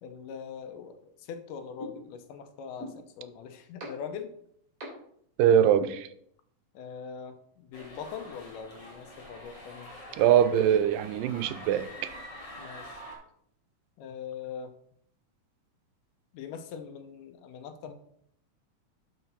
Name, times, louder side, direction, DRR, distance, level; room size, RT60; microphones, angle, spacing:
voice 1, 0.0-4.3 6.7-9.9 12.6-13.0 14.0-14.7 16.3-17.9, left 7 dB, 80° left, 2.4 m, -42 dB
sound 1, 1.8-1.9 2.8-2.9 3.8-3.9 4.8-4.9 5.8-5.9, equal, 35° right, 3.7 m, -38 dB
voice 2, 5.4-6.1 10.2-12.1, right 9 dB, 85° right, 2.2 m, -23 dB
sound 2, 7.7-13.2, equal, 25° left, 2.6 m, -46 dB
11.0 x 5.1 x 4.1 m
omnidirectional pair, 3.8 m